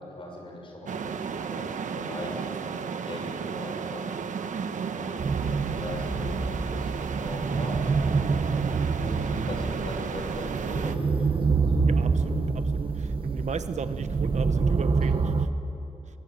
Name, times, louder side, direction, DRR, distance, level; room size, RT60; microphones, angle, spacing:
voice 1, 0.0-7.8 9.0-11.5 12.3-12.6 13.1-13.5, left 1 dB, 45° left, 1 dB, 6.6 m, -40 dB
sound 1, 0.9-11.0, right 6 dB, 85° right, 1.1 m, -34 dB
voice 2, 4.5-5.0 11.9-15.5, right 6 dB, 65° right, 10 dB, 1.1 m, -36 dB
sound 2, 5.2-15.5, right 4 dB, 45° right, 1.2 m, -27 dB
23.5 x 23.0 x 9.3 m, 2.8 s
wide cardioid pair, 160°, 13 cm